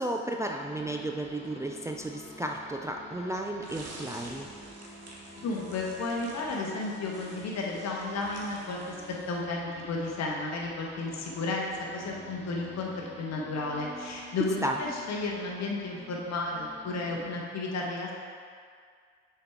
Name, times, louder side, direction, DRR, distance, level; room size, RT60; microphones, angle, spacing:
voice 1, 0.0-4.5 14.6-14.8, right 1 dB, 10° right, 2 dB, 0.4 m, -33 dB
sound 1, 0.6-17.4, left 1 dB, 20° left, 1.3 m, -49 dB
sound 2, 3.6-9.5, right 2 dB, 45° right, 1.2 m, -49 dB
voice 2, 5.3-8.8 9.3-11.6 11.9-18.1, left 3 dB, 45° left, -2 dB, 1.2 m, -33 dB
6.4 x 4.6 x 3.6 m, 2.1 s
hypercardioid pair, 55°, 35 cm